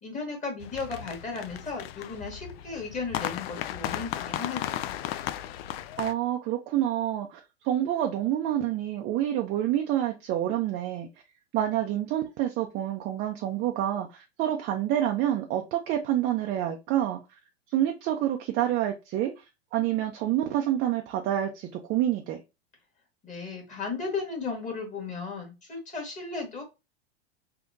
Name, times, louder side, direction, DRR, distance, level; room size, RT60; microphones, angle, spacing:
voice 1, 0.0-4.9 23.2-26.6, left 4 dB, 20° left, 1.6 m, -35 dB
sound 1, 0.6-6.1, left 12 dB, 65° left, 0.5 m, -35 dB
voice 2, 6.0-11.1 11.5-17.2 17.7-19.4 19.7-22.4, right 12 dB, 35° right, 0.5 m, -28 dB
3.6 x 2.8 x 2.5 m
supercardioid pair, 125°, 33 cm